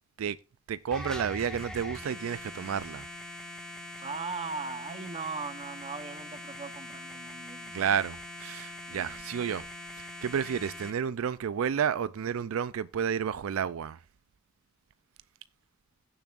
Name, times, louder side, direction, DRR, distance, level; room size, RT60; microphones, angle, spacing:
voice 1, 0.7-3.1 7.7-9.7 10.0-14.0, right 7 dB, 70° right, 0.4 m, -31 dB
sound 1, 0.9-10.9, left 1 dB, 5° left, 1.6 m, -42 dB
voice 2, 4.0-7.7 8.9-9.2, right 4 dB, 30° right, 0.9 m, -39 dB
16.0 x 7.1 x 2.5 m
head